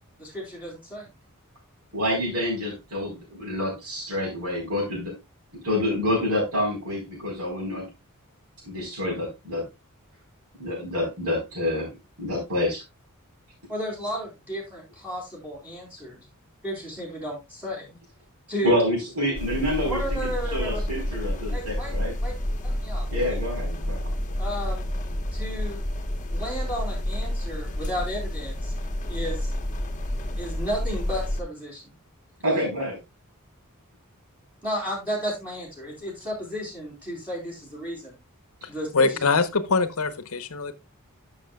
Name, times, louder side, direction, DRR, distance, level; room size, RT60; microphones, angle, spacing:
voice 1, 0.2-1.1 13.7-16.2 16.6-18.0 18.5-18.7 19.8-20.8 21.5-21.9 22.2-22.3 22.6-23.4 24.4-24.9 25.3-25.8 26.3-28.7 29.0-29.5 30.2-31.9 32.4-32.7 34.6-38.2 38.7-39.2, equal, 5° right, 3.7 m, -33 dB
voice 2, 1.9-5.1 5.6-7.9 8.6-9.6 10.6-11.9 12.2-12.8 18.6-22.1 23.1-24.1 32.4-33.0, left 1 dB, 85° right, 4.4 m, -27 dB
sound 1, 19.3-31.4, left 1 dB, 35° left, 1.1 m, -29 dB
voice 3, 38.9-40.7, left 4 dB, 70° left, 0.9 m, -23 dB
12.5 x 6.3 x 2.3 m
head